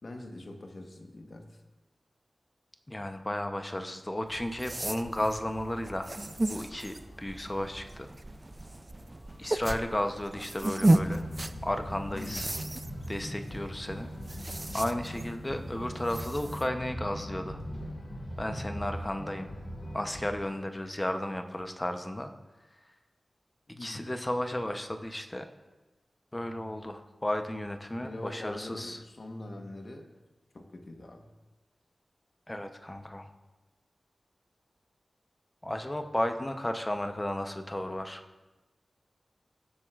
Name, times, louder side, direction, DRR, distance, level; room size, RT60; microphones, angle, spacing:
voice 1, 0.0-1.6 12.1-12.5 23.7-24.1 28.0-30.1 30.5-31.3, left 1 dB, 55° left, 3 dB, 1.2 m, -43 dB
voice 2, 2.9-6.1 6.5-8.1 9.4-11.2 11.6-12.5 13.1-14.1 14.7-17.6 18.4-19.5 19.9-22.3 23.8-25.5 26.3-29.0 32.5-33.3 35.6-38.2, left 1 dB, 20° left, 6 dB, 0.7 m, -33 dB
sound 1, 4.3-16.7, right 1 dB, 25° right, 0.4 m, -34 dB
sound 2, 5.7-20.4, equal, 75° left, 2.2 m, -42 dB
20.0 x 7.7 x 2.5 m, 1.1 s
wide cardioid pair, 105°, 0 cm